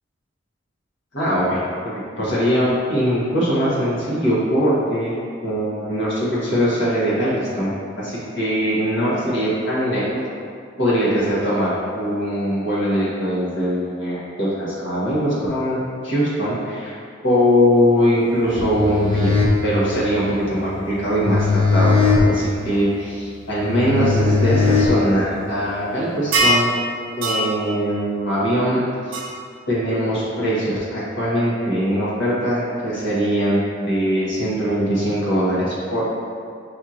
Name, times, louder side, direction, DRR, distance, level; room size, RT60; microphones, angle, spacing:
voice 1, 1.1-5.1 5.4-10.2 10.8-16.9 17.2-21.9 22.2-26.7 27.2-29.1 29.7-36.2, equal, 70° left, -8 dB, 1.3 m, -21 dB
sound 1, 18.5-25.5, left 4 dB, 30° left, 0.5 m, -20 dB
sound 2, 26.3-26.7 27.2-27.5 29.1-29.2, right 2 dB, 85° right, 0.6 m, -18 dB
5.6 x 2.9 x 2.5 m, 2.3 s
head